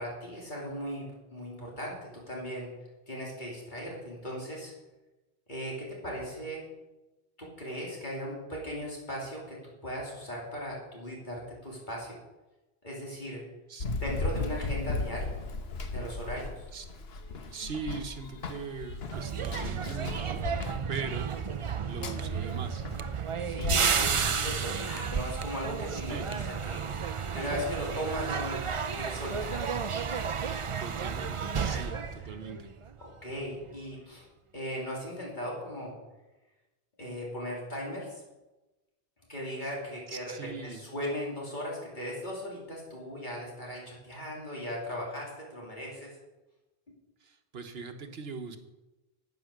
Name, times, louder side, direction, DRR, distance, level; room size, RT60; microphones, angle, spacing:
voice 1, 0.0-2.0 2.3-2.7 3.1-4.7 5.5-6.6 7.4-9.6 9.8-12.2 12.8-13.4 13.9-15.4 15.9-16.7 23.4-26.8 27.3-28.6 28.9-30.0 31.7-32.3 33.0-34.2 34.5-36.0 37.0-38.2 39.3-46.2, equal, 50° left, -4 dB, 3.3 m, -38 dB
Run, 13.8-25.2, left 3 dB, 75° left, 1.3 m, -37 dB
voice 2, 17.5-20.4 20.9-21.3 21.9-22.9 23.6-24.4 25.9-26.3 30.8-32.7 40.1-40.8 47.2-48.6, right 5 dB, 75° right, 7 dB, 1.4 m, -40 dB
sound 1, 19.1-33.1 33.4-33.7, right 6 dB, 40° right, 0.5 m, -32 dB
11.0 x 9.1 x 6.6 m, 1.1 s
omnidirectional pair, 1.0 m